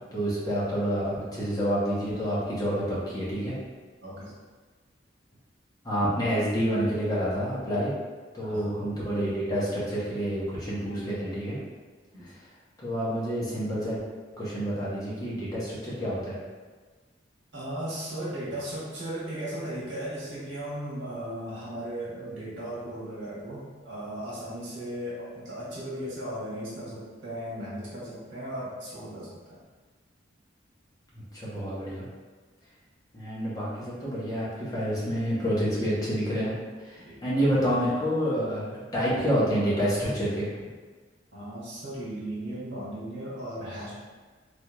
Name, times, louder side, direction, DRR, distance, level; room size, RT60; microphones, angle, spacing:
voice 1, 0.1-3.5 5.8-7.9 8.3-11.6 12.8-14.0 14.4-16.4 31.3-32.0 33.1-36.5 36.8-40.5, equal, 20° left, -8 dB, 0.8 m, -28 dB
voice 2, 4.0-4.3 8.4-8.7 12.1-12.2 17.5-29.6 37.0-37.2 41.3-44.0, right 1 dB, 80° right, -8 dB, 1.2 m, -36 dB
3.3 x 2.8 x 2.3 m, 1.4 s
head